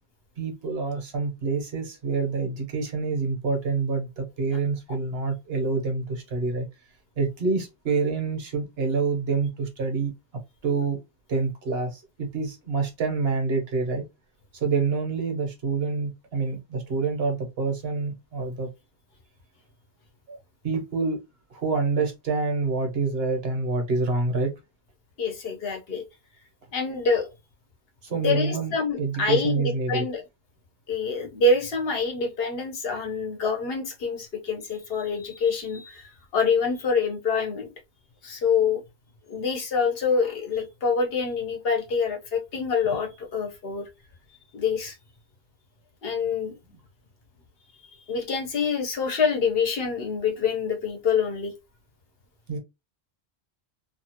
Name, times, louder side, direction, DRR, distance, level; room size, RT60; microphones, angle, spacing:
voice 1, 0.4-6.7 7.2-10.1 10.6-11.0 11.3-14.0 14.5-18.7 20.3-20.4 20.6-21.2 21.5-24.5 28.0-30.0 46.7-46.8 52.5-52.6, right 4 dB, 65° right, 1.2 m, -27 dB
voice 2, 25.2-26.0 26.7-27.3 28.1-30.2 30.9-37.7 38.2-38.8 39.3-43.9 44.5-45.0 46.0-46.6 48.1-51.5, left 4 dB, 60° left, 1.1 m, -26 dB
2.8 x 2.4 x 2.8 m
omnidirectional pair, 1.1 m